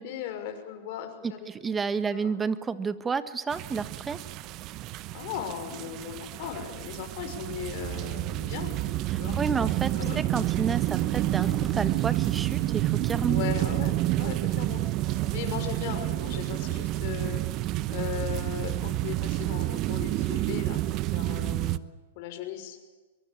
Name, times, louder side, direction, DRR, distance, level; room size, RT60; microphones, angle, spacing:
voice 1, 0.0-2.4 5.1-8.7 9.2-9.4 10.0-10.2 13.3-17.4 17.9-20.8 21.1-21.8 22.2-22.8, left 9 dB, 50° left, 7 dB, 5.8 m, -38 dB
voice 2, 1.2-4.2 9.1-13.5, right 5 dB, 15° right, 12 dB, 1.5 m, -31 dB
sound 1, 3.5-21.8, right 16 dB, 40° right, 1.0 m, -29 dB
sound 2, 8.7-9.0 9.2-10.1 10.3-10.6 10.9-12.8 13.1-13.3, equal, ahead, 3.4 m, -42 dB
24.0 x 23.0 x 8.8 m, 1.2 s
hypercardioid pair, 115°, 0 cm